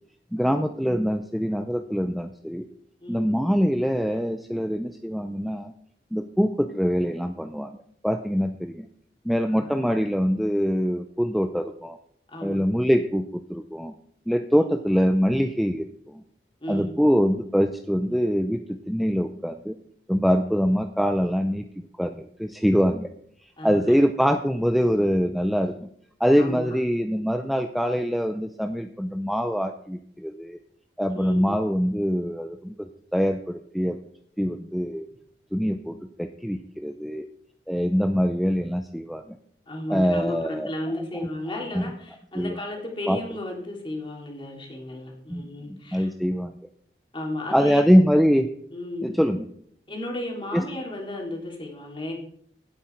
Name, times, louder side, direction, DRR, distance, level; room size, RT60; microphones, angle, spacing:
voice 1, 0.3-2.7 3.1-5.7 6.1-7.8 8.0-8.9 9.3-12.0 12.4-13.9 14.3-16.2 16.7-19.8 20.1-21.7 22.0-23.1 23.6-25.8 26.2-30.6 31.0-34.0 34.4-35.1 35.5-37.3 37.7-39.4 39.9-40.7 41.7-41.8 42.3-42.6 43.1-43.2 45.3-46.5 47.5-48.5 49.0-49.5 50.5-50.6, equal, ahead, 6 dB, 0.5 m, -24 dB
voice 2, 9.4-9.8 12.3-12.7 14.6-14.7 16.6-17.0 23.6-24.0 26.4-26.7 31.1-31.5 39.7-46.1 47.1-47.9 48.7-49.1 49.9-52.1, left 1 dB, 30° left, 0 dB, 3.0 m, -34 dB
17.0 x 8.4 x 4.5 m, 0.66 s
head